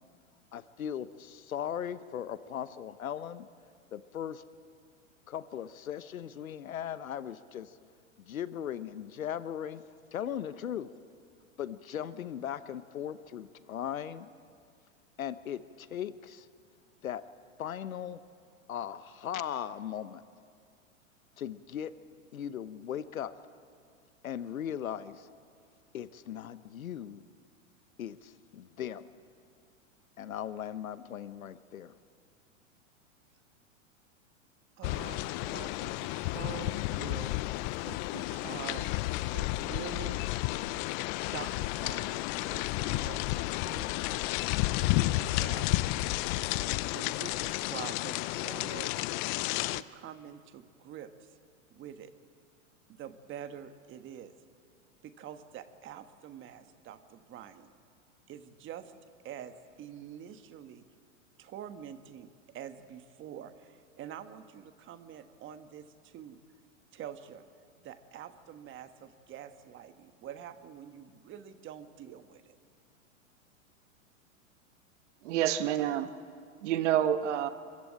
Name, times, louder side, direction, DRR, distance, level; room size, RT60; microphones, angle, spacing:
voice 1, 0.5-3.5 3.9-4.4 5.3-7.8 8.2-9.8 10.1-10.9 11.6-14.3 15.2-16.5 17.0-17.2 17.6-18.2 18.7-20.2 21.4-21.9 22.3-23.3 24.2-25.3 25.9-27.2 28.0-29.1 30.2-31.9, left 9 dB, 85° left, 14 dB, 1.1 m, -38 dB
sound 1, 34.8-49.8, left 18 dB, 35° left, 0.5 m, -32 dB
voice 2, 34.8-37.3 37.8-39.0 39.3-40.2 41.3-44.2 45.0-45.7 46.9-49.0 49.7-51.3 51.7-52.1 52.9-54.3 55.0-57.7 58.3-58.9 59.2-60.8 61.4-62.3 62.5-66.4 66.9-67.5 67.8-72.6, right 9 dB, 30° right, 9 dB, 1.4 m, -46 dB
voice 3, 75.2-76.1 76.6-77.5, right 11 dB, 60° right, 10 dB, 1.5 m, -28 dB
25.5 x 14.5 x 8.7 m, 2.2 s
hypercardioid pair, 115°, 40 cm